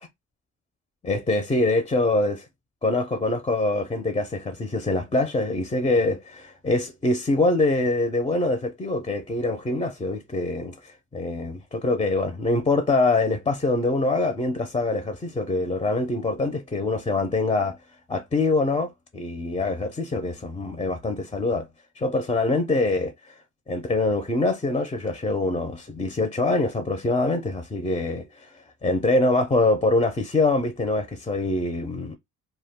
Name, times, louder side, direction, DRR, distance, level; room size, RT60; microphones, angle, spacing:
voice 1, 1.0-2.5 2.8-17.8 18.1-21.7 22.0-23.1 23.7-28.5 28.8-32.2, left 2 dB, 20° left, 0.5 m, -24 dB
2.2 x 2.2 x 3.5 m
cardioid pair, 90°, 30 cm